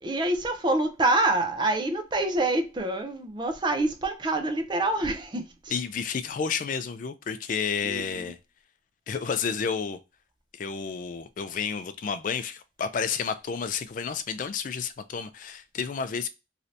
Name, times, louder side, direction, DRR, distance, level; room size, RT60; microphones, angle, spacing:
voice 1, 0.0-5.7 7.8-8.3, right 2 dB, 25° right, 0.5 m, -26 dB
voice 2, 5.7-8.4 9.1-10.0 10.5-16.3, left 6 dB, 40° left, 0.3 m, -31 dB
3.2 x 2.7 x 2.6 m
head